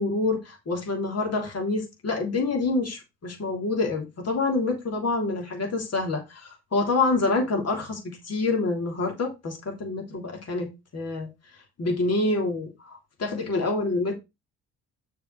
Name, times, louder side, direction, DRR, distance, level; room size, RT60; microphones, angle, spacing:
voice 1, 0.0-11.3 11.8-14.2, left 3 dB, 45° left, 3.2 m, -27 dB
6.7 x 4.2 x 6.5 m
hypercardioid pair, 55°, 35 cm